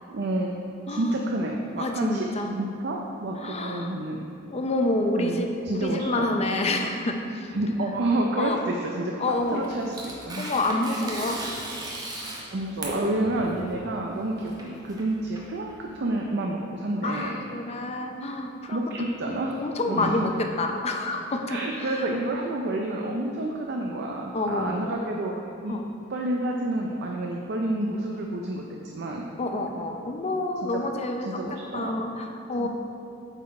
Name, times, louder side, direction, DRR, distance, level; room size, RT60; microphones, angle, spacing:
voice 1, 0.1-0.5 0.9-4.2 5.2-6.5 7.5-10.4 12.2-17.4 18.7-19.6 19.9-20.3 21.5-25.3 25.6-25.7 26.1-29.3 30.7-30.8 31.3-32.0 32.6-32.7, right 1 dB, 60° right, 0 dB, 0.5 m, -29 dB
voice 2, 0.9-1.2 1.8-2.5 3.4-3.9 4.5-7.9 8.4-8.6 9.2-9.7 10.4-11.4 13.7-13.8 17.0-18.8 19.2-22.0 24.3-25.0 25.7-25.8 29.4-32.7, left 2 dB, 35° left, 4 dB, 0.5 m, -28 dB
Tearing, 9.3-16.1, right 1 dB, 20° right, 0.8 m, -37 dB
8.0 x 4.1 x 4.3 m, 2.6 s
head